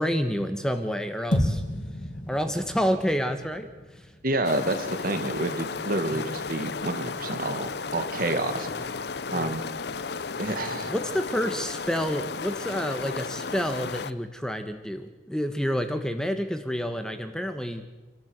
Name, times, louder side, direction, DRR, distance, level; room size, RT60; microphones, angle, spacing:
voice 1, 0.0-1.6 2.3-3.7 6.1-6.2 9.3-9.5 10.9-17.8, equal, 5° left, 7 dB, 1.2 m, -29 dB
sound 1, 1.3-5.7, left 1 dB, 45° left, 2.4 m, -32 dB
voice 2, 4.2-8.9 9.3-9.6 10.4-10.9, right 2 dB, 55° right, 8 dB, 2.1 m, -29 dB
sound 2, 4.4-14.1, left 4 dB, 65° left, 0.7 m, -34 dB
27.0 x 13.0 x 8.1 m, 1.2 s
head